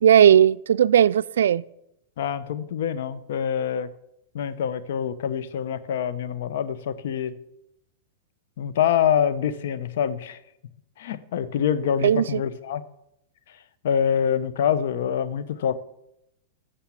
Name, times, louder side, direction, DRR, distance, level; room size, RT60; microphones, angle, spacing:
voice 1, 0.0-1.6 12.0-12.4, right 9 dB, 90° right, 0.3 m, -17 dB
voice 2, 2.2-3.9 4.3-7.4 8.6-10.4 11.0-12.8 13.8-15.8, left 8 dB, 70° left, 0.9 m, -25 dB
13.0 x 7.0 x 7.4 m
supercardioid pair, 140°, 0 cm